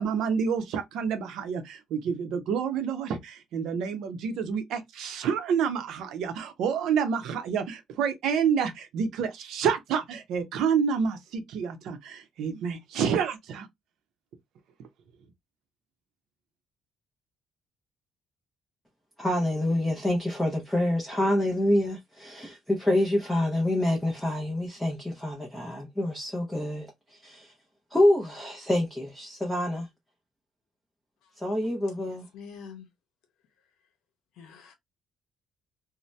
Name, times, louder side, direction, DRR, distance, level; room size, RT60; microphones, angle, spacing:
voice 1, 0.0-13.7, right 7 dB, 70° right, 0.6 m, -28 dB
voice 2, 19.2-27.5 27.9-29.9 31.4-32.3, left 1 dB, ahead, 0.5 m, -27 dB
voice 3, 32.1-32.9 34.4-34.7, left 6 dB, 75° left, 0.8 m, -45 dB
2.7 x 2.1 x 3.1 m
cardioid pair, 175°, 0 cm